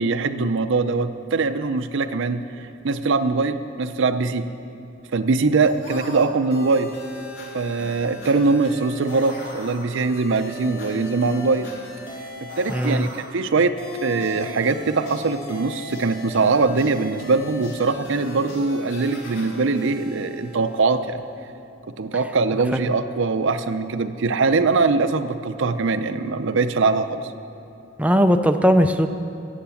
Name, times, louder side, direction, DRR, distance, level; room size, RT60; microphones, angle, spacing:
voice 1, 0.0-4.5 5.1-6.9 7.5-11.7 12.6-13.8 14.0-21.2 22.0-27.2, right 3 dB, 65° right, 11 dB, 0.6 m, -22 dB
sound 1, 5.7-21.2, left 1 dB, 65° left, 2.5 m, -38 dB
voice 2, 12.7-13.1 22.7-22.8 28.0-29.1, equal, 5° right, 6 dB, 0.4 m, -18 dB
14.5 x 8.5 x 7.1 m, 2.6 s
head